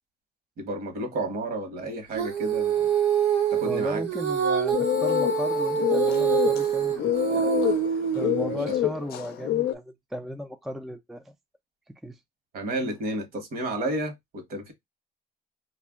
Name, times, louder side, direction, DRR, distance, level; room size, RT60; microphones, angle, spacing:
voice 1, 0.6-2.9 3.5-4.0 8.4-8.8 12.5-14.7, right 1 dB, 60° right, 1.2 m, -32 dB
Female singing, 2.1-8.6, right 7 dB, 90° right, 1.2 m, -25 dB
voice 2, 3.6-7.5 7.9-11.3 12.0-12.2, equal, ahead, 0.3 m, -36 dB
sound 1, 4.7-9.7, left 13 dB, 65° left, 0.4 m, -27 dB
2.4 x 2.1 x 3.5 m
cardioid pair, 110°, 17 cm